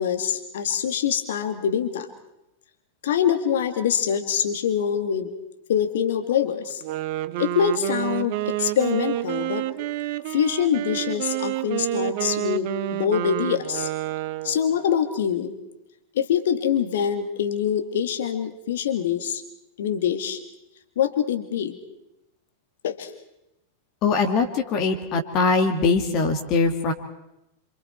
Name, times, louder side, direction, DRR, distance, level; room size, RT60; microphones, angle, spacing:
voice 1, 0.0-2.1 3.0-5.3 5.7-6.8 7.4-9.7 10.3-12.7 13.0-13.9 14.4-15.6 16.1-19.4 19.8-20.4 21.0-21.8 22.8-23.1, left 8 dB, 60° left, 7 dB, 2.1 m, -24 dB
Wind instrument woodwind instrument, 6.7-14.7, right 15 dB, 50° right, 0.9 m, -29 dB
voice 2, 24.0-26.9, left 4 dB, 40° left, 4 dB, 2.5 m, -22 dB
28.0 x 26.0 x 4.5 m, 0.88 s
figure-of-eight pair, 90°, 0 cm